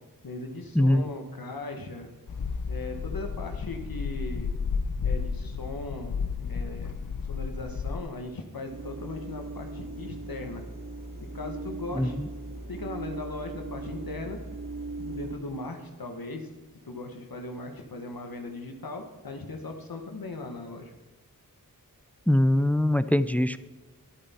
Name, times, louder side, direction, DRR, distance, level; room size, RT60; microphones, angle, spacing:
voice 1, 0.2-2.1 2.7-4.5 5.0-7.0 7.3-10.6 11.3-12.2 12.7-14.4 15.0-16.5 16.8-20.9, left 2 dB, 80° left, 5 dB, 1.2 m, -38 dB
voice 2, 0.8-1.1 12.0-12.3 22.3-23.6, left 1 dB, 5° left, 15 dB, 0.4 m, -22 dB
sound 1, 2.3-8.0, left 5 dB, 60° left, 0.6 m, -32 dB
sound 2, 8.7-15.4, right 2 dB, 65° right, 1.8 m, -39 dB
11.0 x 8.9 x 4.2 m, 1.2 s
wide cardioid pair, 40°, 35 cm